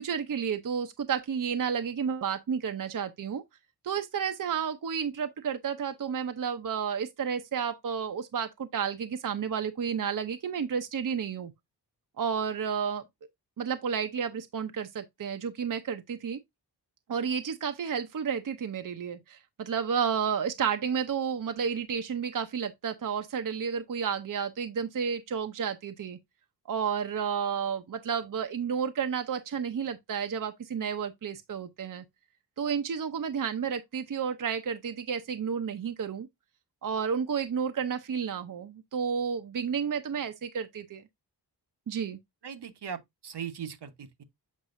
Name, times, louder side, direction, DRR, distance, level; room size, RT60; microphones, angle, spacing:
voice 1, 0.0-3.4 3.8-11.5 12.2-13.0 13.6-16.4 17.1-26.2 26.7-32.0 32.6-36.3 36.8-41.0 41.9-42.2, right 7 dB, 50° right, 0.7 m, -31 dB
voice 2, 42.4-44.2, right 7 dB, 70° right, 1.1 m, -39 dB
7.3 x 5.2 x 2.5 m
wide cardioid pair, 85°, 41 cm